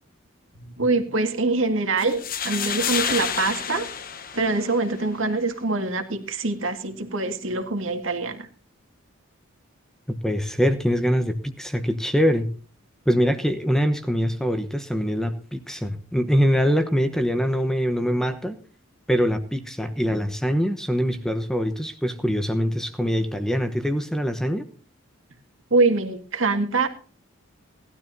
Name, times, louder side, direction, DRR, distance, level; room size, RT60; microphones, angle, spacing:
voice 1, 0.6-3.9 4.3-8.5 25.7-26.9, right 3 dB, 70° right, 5 dB, 2.0 m, -24 dB
sound 1, 2.0-5.0, left 7 dB, 45° left, 1.0 m, -29 dB
voice 2, 10.1-12.5 13.1-18.6 19.1-24.7, equal, ahead, 8 dB, 0.9 m, -23 dB
19.0 x 12.0 x 2.7 m, 0.40 s
head